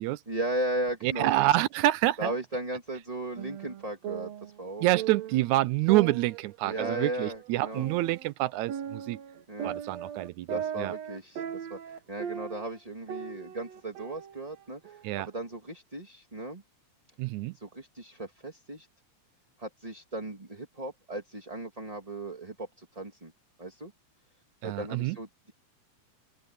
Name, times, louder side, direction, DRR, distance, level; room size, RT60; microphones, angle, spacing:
voice 1, 0.3-1.3 2.2-4.3 4.6-4.9 6.6-7.9 9.5-9.8 10.5-11.4 11.7-11.8 12.1-14.8 15.2-16.6 17.6-18.9 19.6-22.5 23.0-23.3 23.6-23.9 24.6-25.5, right 1 dB, 15° right, 1.9 m, -36 dB
voice 2, 1.0-2.3 4.8-9.2 9.6-10.9 15.0-15.3 17.2-17.5 24.6-25.2, right 17 dB, 85° right, 2.0 m, -27 dB
sound 1, 3.4-5.5 5.9-8.3 8.7-12.8 13.1-15.1, right 9 dB, 65° right, 2.4 m, -38 dB
open air
omnidirectional pair, 3.4 m